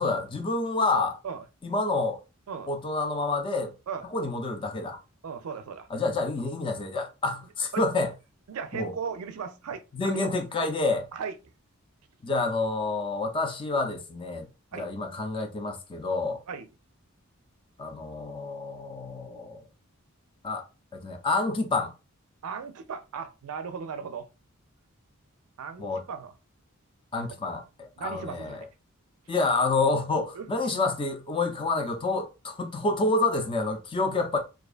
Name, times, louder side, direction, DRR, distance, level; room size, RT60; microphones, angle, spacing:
voice 1, 0.0-1.2 1.6-2.2 2.7-3.7 4.1-5.0 5.9-8.1 8.7-8.9 9.9-11.1 12.2-16.4 17.8-19.6 20.4-20.6 20.9-21.9 25.8-26.0 27.1-28.6 29.3-34.4, left 3 dB, 25° left, 0.4 m, -28 dB
voice 2, 5.2-5.9 7.7-7.8 8.5-10.3 11.1-11.4 14.7-14.9 16.5-16.7 22.4-24.3 25.6-26.3 27.3-27.4 28.0-28.7 30.4-30.5, right 6 dB, 80° right, 0.4 m, -37 dB
2.4 x 2.3 x 2.4 m
head